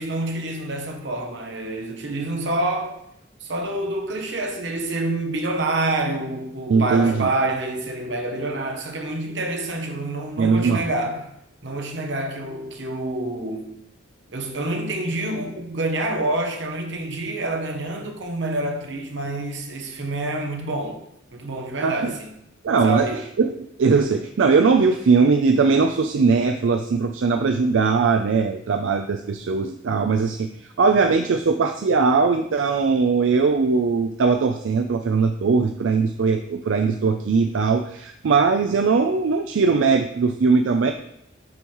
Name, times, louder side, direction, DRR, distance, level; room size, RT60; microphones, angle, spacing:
voice 1, 0.0-3.0 3.4-11.3 11.6-13.8 14.3-21.0 21.3-22.4 22.8-23.3, right 2 dB, 70° right, 1.0 m, -27 dB
voice 2, 6.7-7.3 10.4-10.9 21.8-22.1 22.6-23.5 23.8-40.9, right 4 dB, 90° right, 0.4 m, -20 dB
7.9 x 3.0 x 5.4 m
head